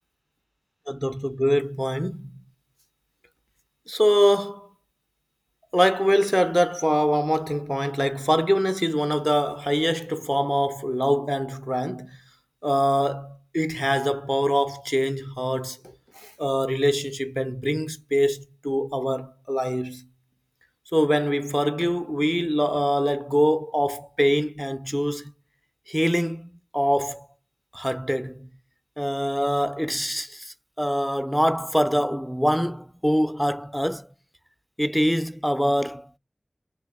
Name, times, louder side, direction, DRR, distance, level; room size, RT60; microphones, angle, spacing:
voice 1, 0.9-2.3 3.9-4.7 5.7-12.2 12.6-20.0 20.9-25.3 25.9-27.3 27.7-28.5 29.0-34.1 34.8-36.2, equal, ahead, 0.4 m, -24 dB
3.4 x 2.7 x 3.3 m
wide cardioid pair, 45°, 0 cm